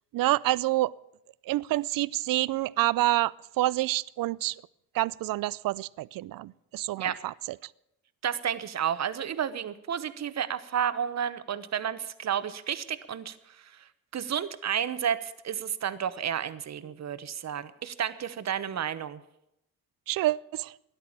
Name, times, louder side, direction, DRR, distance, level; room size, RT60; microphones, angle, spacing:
voice 1, 0.1-0.9 1.5-4.6 4.9-7.3 20.1-20.8, right 16 dB, 80° right, 0.5 m, -27 dB
voice 2, 8.2-19.2, right 8 dB, 50° right, 1.0 m, -31 dB
13.5 x 10.5 x 8.6 m
cardioid pair, 95°, 33 cm